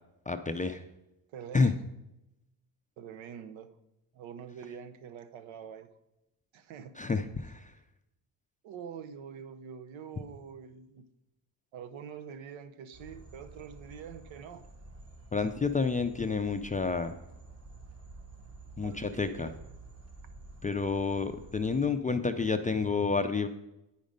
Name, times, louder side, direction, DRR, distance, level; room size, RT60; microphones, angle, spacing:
voice 1, 0.3-0.8 1.5-1.7 7.0-7.7 15.3-17.1 18.8-19.5 20.6-23.5, left 4 dB, 20° left, 0.4 m, -29 dB
voice 2, 1.3-1.7 3.0-3.8 4.1-5.9 6.5-7.0 8.6-11.1 11.7-14.7 18.8-19.6, right 7 dB, 75° right, 0.8 m, -45 dB
sound 1, 12.9-21.9, right 2 dB, 30° right, 1.5 m, -51 dB
9.4 x 5.3 x 5.1 m
cardioid pair, 85°, 46 cm